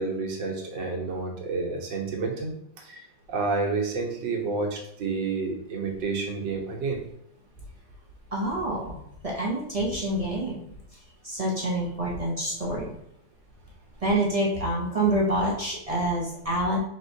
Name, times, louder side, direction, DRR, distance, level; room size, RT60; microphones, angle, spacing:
voice 1, 0.0-3.0 3.3-7.0, right 4 dB, 85° right, 1 dB, 1.6 m, -30 dB
voice 2, 8.3-10.7 11.2-13.0 14.0-16.8, right 1 dB, 45° right, -4 dB, 0.4 m, -27 dB
4.4 x 4.4 x 2.7 m, 0.76 s
omnidirectional pair, 1.9 m